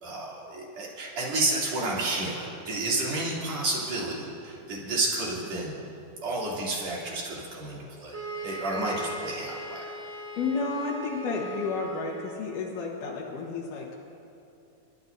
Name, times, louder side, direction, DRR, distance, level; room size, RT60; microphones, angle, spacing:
voice 1, 0.0-5.8 6.2-9.8, right 2 dB, 50° right, -5 dB, 3.9 m, -31 dB
sound 1, 8.1-12.5, right 2 dB, 5° left, 3.0 m, -38 dB
voice 2, 10.4-13.9, left 4 dB, 70° left, -4 dB, 2.7 m, -31 dB
29.5 x 12.5 x 2.6 m, 2.7 s
omnidirectional pair, 4.0 m